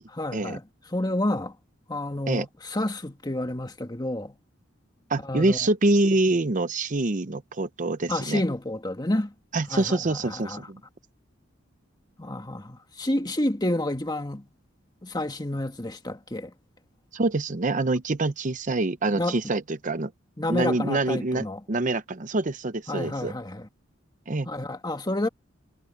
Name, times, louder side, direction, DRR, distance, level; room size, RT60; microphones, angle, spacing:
voice 1, 0.1-1.6 1.9-4.4 5.2-5.7 8.1-9.3 9.7-10.7 12.2-14.5 15.0-16.5 19.1-19.4 20.4-21.6 22.9-23.7 24.5-25.3, left 1 dB, 20° left, 1.8 m, -29 dB
voice 2, 5.1-8.4 9.5-10.8 17.1-20.1 20.5-23.3 24.3-24.5, right 2 dB, 40° right, 0.7 m, -25 dB
head